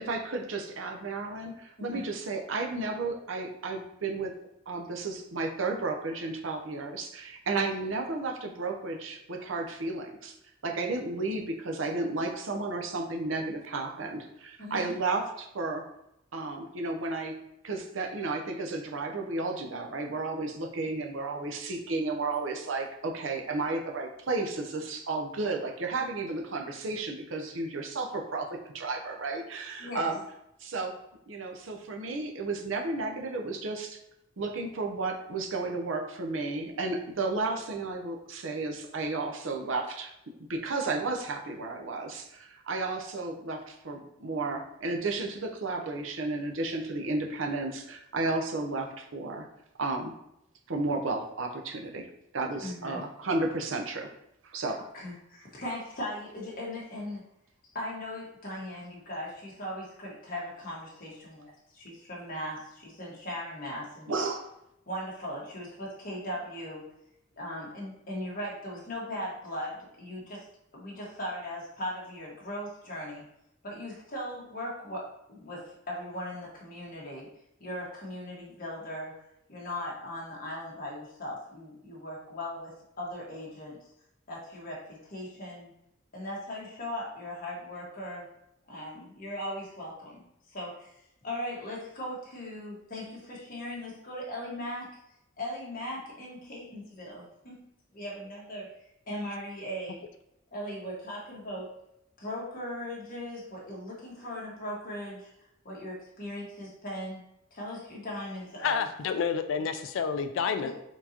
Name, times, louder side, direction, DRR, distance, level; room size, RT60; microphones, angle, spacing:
voice 1, 0.0-4.3 4.7-10.3 10.6-15.8 16.3-17.3 17.6-28.5 28.7-30.2 30.6-30.9 31.3-34.0 34.4-40.1 40.5-49.5 49.8-50.1 50.7-54.1 54.4-54.8 64.1-64.5, right 3 dB, 85° right, 2 dB, 0.7 m, -33 dB
voice 2, 14.6-14.9 29.8-30.1 52.6-53.0 54.9-57.2 57.7-64.3 64.9-66.8 67.4-70.4 70.7-73.2 73.6-77.3 77.6-79.1 79.5-83.8 84.3-85.7 86.1-88.3 88.7-94.9 95.4-97.6 97.9-98.7 99.1-100.0 100.5-101.7 102.2-105.3 105.6-107.2 107.5-108.9 110.6-110.7, left 1 dB, 45° left, -4 dB, 1.5 m, -38 dB
voice 3, 108.6-110.7, left 6 dB, 75° left, 9 dB, 0.3 m, -29 dB
4.4 x 3.9 x 2.9 m, 0.81 s
head